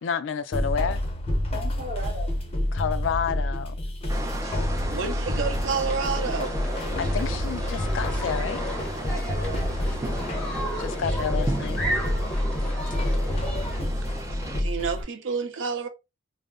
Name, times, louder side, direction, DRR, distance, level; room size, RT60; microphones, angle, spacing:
voice 1, 0.0-1.0 2.7-3.7 7.0-8.6 10.8-11.8, left 7 dB, 90° left, 0.4 m, -29 dB
sound 1, 0.5-15.0, left 1 dB, 35° left, 0.6 m, -28 dB
voice 2, 1.5-2.4 4.4-4.6 9.1-10.1 13.8-14.2, right 1 dB, 35° right, 1.1 m, -40 dB
sound 2, 4.1-14.6, right 1 dB, 15° right, 0.4 m, -36 dB
voice 3, 4.9-6.6 10.7-10.8 12.4-12.5 12.9-13.1 13.6-13.7 14.6-15.9, right 5 dB, 90° right, 0.5 m, -30 dB
sound 3, 5.8-13.8, equal, 5° left, 0.8 m, -35 dB
2.2 x 2.0 x 3.5 m
head